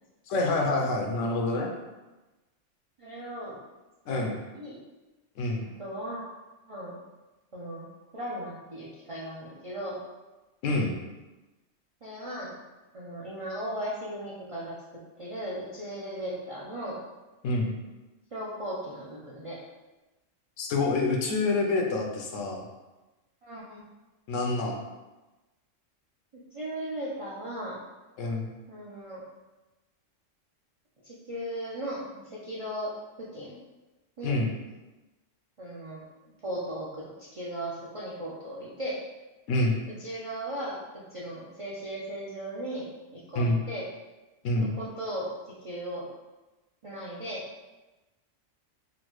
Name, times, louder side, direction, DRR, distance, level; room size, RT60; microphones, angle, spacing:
voice 1, 0.3-1.7 4.1-4.4 5.4-5.6 10.6-11.0 17.4-17.7 20.6-22.6 24.3-24.8 28.2-28.5 34.2-34.5 39.5-39.8 43.3-43.6 44.4-44.7, left 2 dB, 80° left, 1 dB, 0.9 m, -27 dB
voice 2, 3.0-3.6 4.1-4.2 4.5-4.8 5.6-6.2 6.7-7.0 7.5-7.9 8.1-10.0 12.0-12.5 12.9-14.7 15.2-17.0 18.3-19.6 23.4-23.8 26.5-27.8 28.7-29.2 31.0-32.9 33.3-33.6 34.2-34.4 35.6-36.0 36.4-39.0 40.0-40.8 41.1-43.8 44.8-45.3 45.6-46.1 46.8-47.4, right 1 dB, 55° right, -7 dB, 0.3 m, -37 dB
3.7 x 2.1 x 3.0 m, 1.1 s
omnidirectional pair, 1.3 m